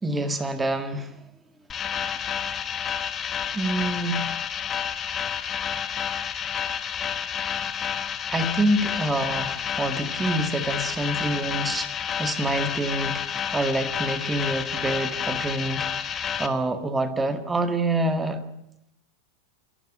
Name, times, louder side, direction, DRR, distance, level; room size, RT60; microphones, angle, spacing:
voice 1, 0.0-1.1 3.5-4.3 8.3-18.4, right 2 dB, 10° right, 9 dB, 1.9 m, -27 dB
sound 1, 1.7-16.5, left 8 dB, 25° left, 1.4 m, -30 dB
28.5 x 12.5 x 9.2 m, 0.80 s
figure-of-eight pair, 90°, 0 cm